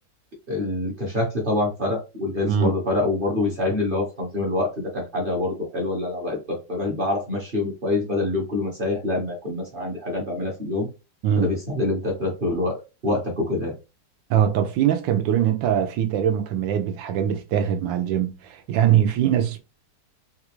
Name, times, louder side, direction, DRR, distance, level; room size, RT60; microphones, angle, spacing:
voice 1, 0.5-10.9 11.4-13.7, left 2 dB, 40° right, 0.8 m, -26 dB
voice 2, 14.3-19.6, right 9 dB, 85° right, 1.3 m, -22 dB
3.9 x 2.4 x 2.9 m
omnidirectional pair, 2.0 m